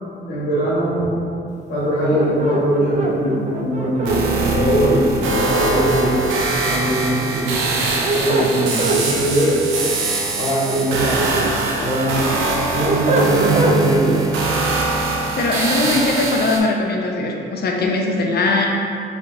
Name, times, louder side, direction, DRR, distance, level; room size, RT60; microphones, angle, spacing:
voice 1, 0.3-1.2 1.7-6.3 6.6-7.8 8.1-9.6 10.4-11.3 11.8-12.4 12.7-14.2 15.8-15.9, right 1 dB, 85° left, -7 dB, 1.4 m, -21 dB
sound 1, 2.1-4.2 5.5-6.6 7.8-9.0 10.4-11.6 12.0-13.8, right 2 dB, 35° right, 0.5 m, -23 dB
sound 2, 4.0-16.6, right 3 dB, 90° right, 0.7 m, -22 dB
voice 2, 15.4-18.7, left 2 dB, 55° left, 1 dB, 0.6 m, -20 dB
4.8 x 3.3 x 2.7 m, 2.5 s
cardioid pair, 90°, 20 cm